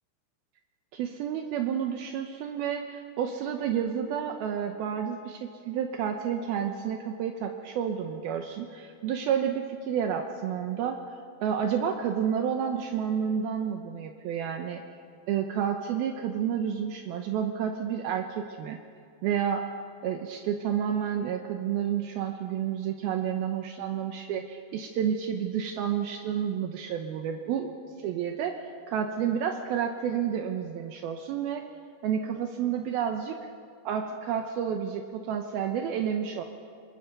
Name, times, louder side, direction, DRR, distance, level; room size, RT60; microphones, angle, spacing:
voice 1, 0.9-11.0 11.4-14.8 15.3-18.8 19.2-19.6 20.0-28.5 28.9-31.7 32.0-33.4 33.9-36.4, right 8 dB, 75° right, 4 dB, 2.7 m, -30 dB
24.5 x 22.5 x 6.7 m, 2.3 s
omnidirectional pair, 4.6 m